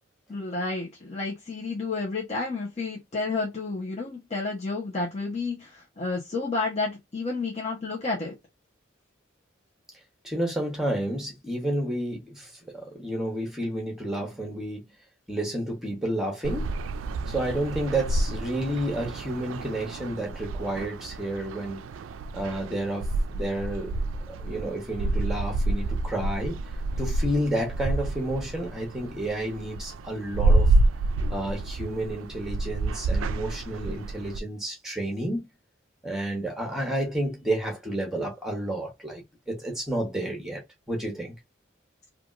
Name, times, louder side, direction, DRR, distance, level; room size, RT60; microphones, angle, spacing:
voice 1, 0.3-8.3, left 3 dB, 35° left, 0.8 m, -31 dB
voice 2, 10.2-14.9 15.3-16.7 17.3-21.8 22.3-23.9 24.3-26.6 27.0-30.7 31.3-35.5 36.0-40.6 40.9-41.3, right 1 dB, ahead, 1.0 m, -30 dB
sound 1, 16.4-34.4, right 2 dB, 85° right, 0.3 m, -28 dB
3.3 x 2.4 x 2.4 m
head